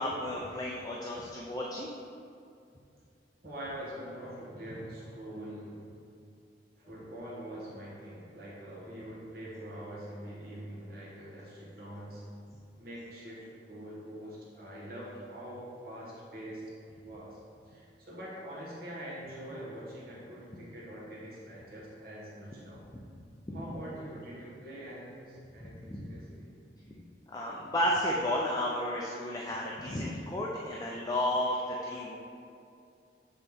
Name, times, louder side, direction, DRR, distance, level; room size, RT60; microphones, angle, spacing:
voice 1, 0.0-1.9 22.9-23.0 23.5-23.7 25.6-26.1 27.3-32.2, left 1 dB, 20° left, -3 dB, 0.5 m, -32 dB
voice 2, 3.4-5.9 6.8-12.2 12.8-16.6 17.0-17.4 17.7-22.8 23.5-26.5 27.6-27.7, right 1 dB, 55° right, -6 dB, 1.2 m, -44 dB
7.7 x 4.0 x 3.5 m, 2.5 s
head